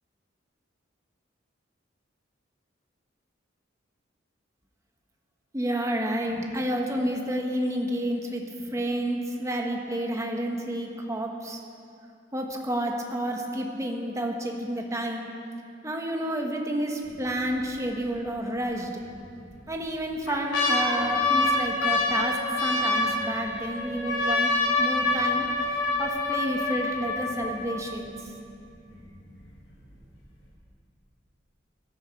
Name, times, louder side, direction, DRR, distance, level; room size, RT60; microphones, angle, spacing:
voice 1, 5.5-11.6 12.3-15.3 15.8-19.0 19.7-25.5 26.0-28.1, right 1 dB, 15° right, 1 dB, 1.4 m, -30 dB
sound 1, 17.1-17.5 18.0-18.1 19.0-19.5 20.0-28.0 28.7-28.8 28.9-29.4 29.9-30.0, left 2 dB, 70° left, 4.2 m, -26 dB
16.0 x 13.5 x 4.7 m, 2.5 s
head